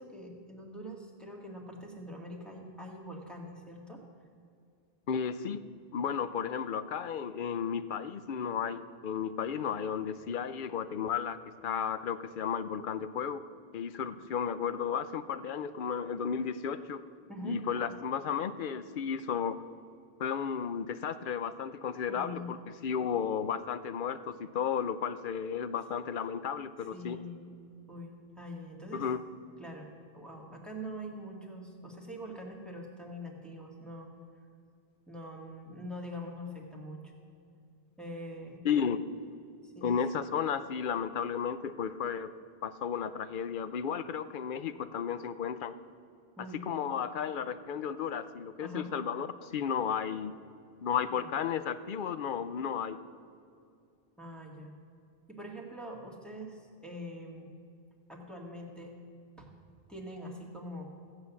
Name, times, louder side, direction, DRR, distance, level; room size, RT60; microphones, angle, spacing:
voice 1, 0.0-4.0 17.3-17.6 22.1-22.6 26.9-27.4 27.9-29.1 29.6-34.1 35.1-37.1 38.0-38.6 39.6-39.9 46.4-46.6 48.6-48.9 54.2-54.7 55.3-57.5 58.1-59.0 59.4-59.5 59.9-60.8, equal, ahead, -1 dB, 1.8 m, -44 dB
voice 2, 5.1-5.6 5.9-11.4 11.6-13.5 13.7-17.0 17.4-19.6 20.2-27.2 28.9-29.2 38.6-39.0 39.8-42.3 42.6-45.8 46.6-50.3 50.8-53.0, left 7 dB, 60° left, 12 dB, 0.7 m, -33 dB
15.0 x 7.9 x 7.0 m, 2.4 s
omnidirectional pair, 1.0 m